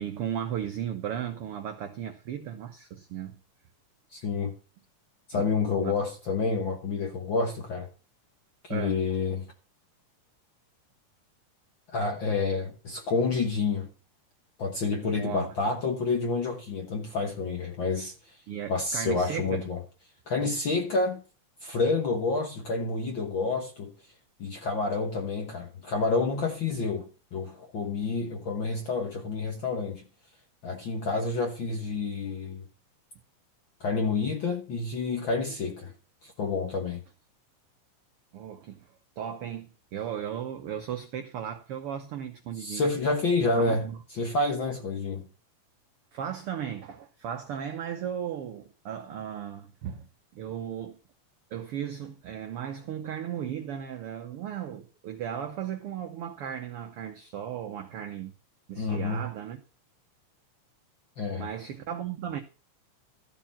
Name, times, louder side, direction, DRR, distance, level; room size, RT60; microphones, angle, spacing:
voice 1, 0.0-3.4 5.3-5.5 5.8-6.0 8.7-9.0 15.0-15.5 18.5-19.6 38.3-42.8 43.6-44.0 46.1-51.0 51.5-58.3 58.7-59.6 61.3-62.4, right 9 dB, 90° right, 1.2 m, -36 dB
voice 2, 4.1-4.5 5.3-7.9 8.6-9.5 11.9-13.9 14.6-18.4 18.7-19.8 20.3-21.2 21.6-23.9 24.4-30.0 30.6-32.7 33.8-35.9 36.2-37.0 42.6-43.9 44.1-45.3 58.7-59.3 61.2-61.5, left 4 dB, 60° left, 1.3 m, -29 dB
13.5 x 4.6 x 7.1 m
omnidirectional pair, 3.8 m